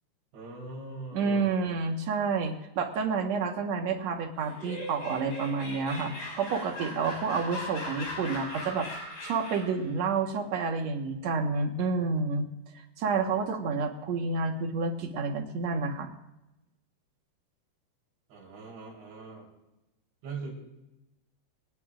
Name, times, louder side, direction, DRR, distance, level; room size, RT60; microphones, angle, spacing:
voice 1, 0.3-1.7 7.1-7.3 18.3-19.5 20.2-20.6, right 3 dB, 85° right, -4 dB, 6.2 m, -42 dB
voice 2, 1.1-8.9 9.2-12.5 13.0-16.1, right 4 dB, 65° right, 3 dB, 1.8 m, -29 dB
Laughter, 4.4-9.8, left 1 dB, 60° left, 7.8 m, -39 dB
26.5 x 17.5 x 2.5 m, 0.94 s
omnidirectional pair, 5.1 m